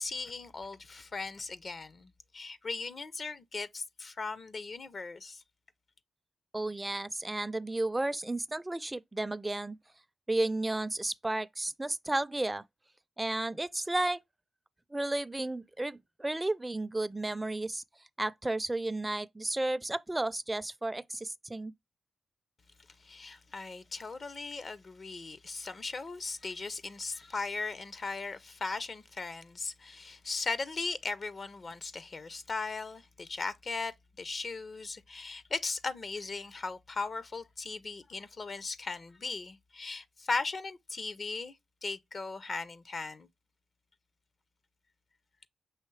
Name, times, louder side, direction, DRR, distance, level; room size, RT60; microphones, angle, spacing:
voice 1, 0.0-5.4 23.0-43.3, left 3 dB, 50° left, 0.5 m, -38 dB
voice 2, 6.5-9.8 10.3-12.6 13.2-14.2 14.9-17.8 18.2-21.7, right 2 dB, 20° right, 0.4 m, -33 dB
5.7 x 3.0 x 3.1 m
supercardioid pair, 50°, 0 cm